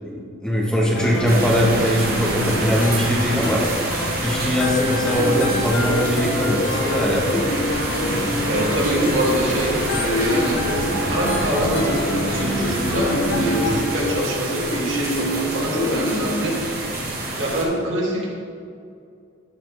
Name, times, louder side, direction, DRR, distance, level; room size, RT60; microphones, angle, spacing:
voice 1, 0.0-3.6 4.2-7.4, equal, 5° left, -4 dB, 1.4 m, -21 dB
sound 1, 0.9-13.9, left 1 dB, 75° left, 1.1 m, -28 dB
sound 2, 1.3-17.6, right 2 dB, 50° right, 1.6 m, -28 dB
sound 3, 5.2-16.4, left 1 dB, 50° left, 0.8 m, -27 dB
voice 2, 8.4-10.6 11.0-16.6 17.4-18.3, right 1 dB, 80° right, -4 dB, 2.3 m, -24 dB
12.5 x 5.6 x 3.6 m, 2.4 s
head